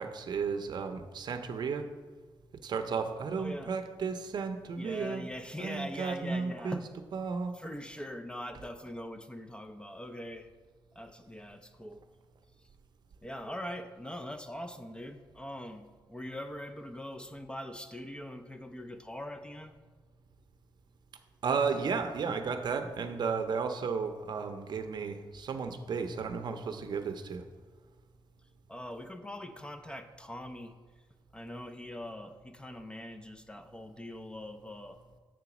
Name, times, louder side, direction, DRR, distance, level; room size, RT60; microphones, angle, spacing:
voice 1, 0.0-1.9 2.6-5.2 5.6-6.8 7.1-7.6 21.4-27.4, right 5 dB, 55° right, 8 dB, 0.6 m, -33 dB
voice 2, 3.4-3.8 4.8-6.9 7.5-10.5 10.9-12.0 12.6-12.7 13.2-19.8 28.7-30.7 31.3-35.0, left 1 dB, 10° left, 7 dB, 0.4 m, -42 dB
7.5 x 3.9 x 5.9 m, 1.5 s
wide cardioid pair, 130°, 9 cm